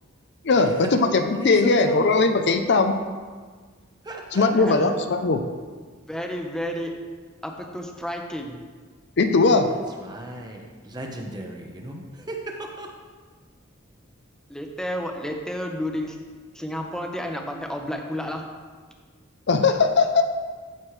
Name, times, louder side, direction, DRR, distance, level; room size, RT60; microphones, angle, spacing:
voice 1, 0.4-3.0 4.3-5.4 9.2-9.7 19.5-20.2, left 3 dB, 55° left, 7 dB, 0.6 m, -19 dB
voice 2, 1.3-2.1 4.0-4.8 10.0-12.9, right 1 dB, 20° right, 1 dB, 1.0 m, -35 dB
voice 3, 4.5-4.8 6.1-6.9 7.4-8.6 14.5-16.2 16.5-18.4, equal, 5° left, 2 dB, 0.8 m, -31 dB
14.5 x 6.5 x 3.2 m, 1.5 s
head